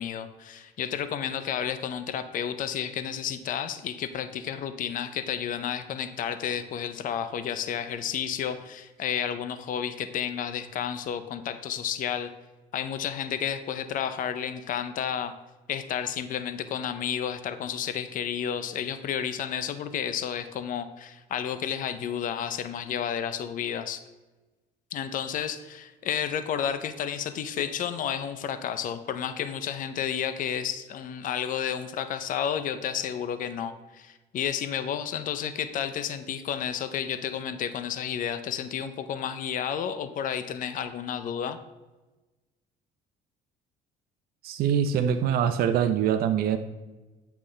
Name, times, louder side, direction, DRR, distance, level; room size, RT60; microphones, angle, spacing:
voice 1, 0.0-12.3 12.7-15.3 15.7-24.0 24.9-41.6, left 8 dB, 50° left, 11 dB, 0.6 m, -31 dB
voice 2, 44.4-46.6, right 8 dB, 65° right, 7 dB, 0.5 m, -24 dB
8.4 x 5.7 x 3.2 m, 1.2 s
cardioid pair, 110°, 17 cm